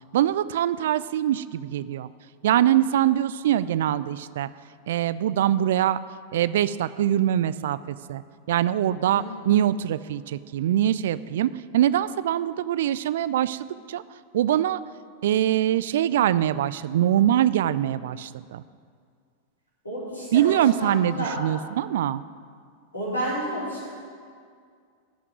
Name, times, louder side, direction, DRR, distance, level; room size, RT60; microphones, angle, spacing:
voice 1, 0.1-2.1 2.4-4.5 4.9-6.0 6.3-8.2 8.5-14.0 14.3-14.8 15.2-18.6 20.3-22.2, right 11 dB, 55° right, 16 dB, 0.4 m, -23 dB
voice 2, 9.0-9.5 19.8-21.3 22.9-23.9, equal, 75° left, -9 dB, 4.0 m, -31 dB
13.5 x 5.9 x 9.2 m, 2.2 s
figure-of-eight pair, 90°, 0 cm